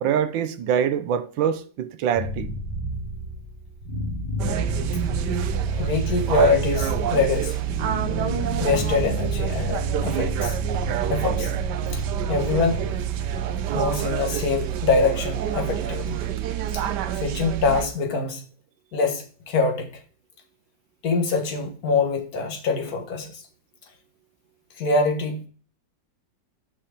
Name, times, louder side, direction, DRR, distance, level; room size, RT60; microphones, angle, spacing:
voice 1, 0.0-2.5, right 8 dB, 85° right, 1.5 m, -24 dB
sound 1, 2.2-16.2, left 1 dB, 30° left, 2.9 m, -32 dB
sound 2, 4.4-17.9, right 12 dB, 70° right, 1.3 m, -27 dB
voice 2, 5.7-7.6 8.6-10.6 11.1-11.5 11.9-12.0 12.3-12.8 13.7-16.2 16.7-16.8 17.2-18.4 18.9-19.9 21.0-23.3 24.8-25.4, left 4 dB, 55° left, 1.8 m, -24 dB
7.0 x 5.8 x 5.0 m
omnidirectional pair, 2.0 m